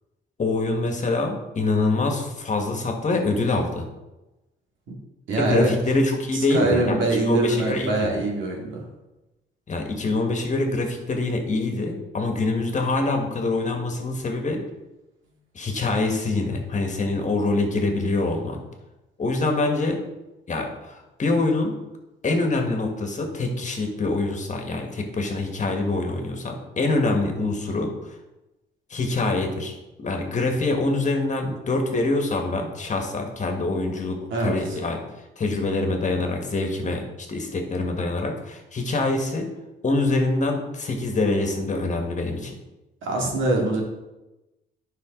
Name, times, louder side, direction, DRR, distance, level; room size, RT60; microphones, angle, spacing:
voice 1, 0.4-3.9 5.3-8.1 9.7-14.6 15.6-18.6 19.2-20.0 20.5-21.7 22.2-27.9 28.9-35.0 35.4-39.5 39.8-42.6, left 2 dB, 40° left, 3 dB, 1.7 m, -25 dB
voice 2, 5.3-5.7 6.3-8.8 34.3-34.8 43.0-43.8, right 2 dB, 75° right, -1 dB, 2.4 m, -23 dB
9.6 x 5.7 x 3.9 m, 1.0 s
cardioid pair, 90°, 20 cm